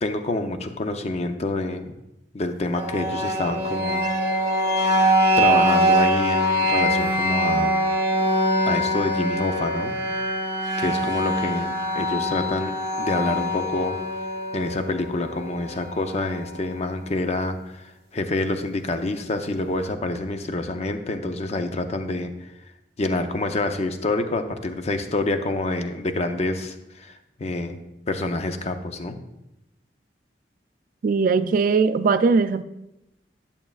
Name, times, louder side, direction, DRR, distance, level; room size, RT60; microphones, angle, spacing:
voice 1, 0.0-1.9 2.3-4.1 5.4-7.8 8.6-9.9 10.8-14.0 14.5-22.5 23.0-27.1 27.4-27.8 28.1-29.2, left 2 dB, 40° left, 7 dB, 0.6 m, -27 dB
sound 1, 2.7-16.7, equal, 20° right, 1.0 m, -23 dB
voice 2, 31.0-32.6, right 4 dB, 50° right, 13 dB, 0.4 m, -20 dB
11.0 x 7.0 x 2.4 m, 0.89 s
head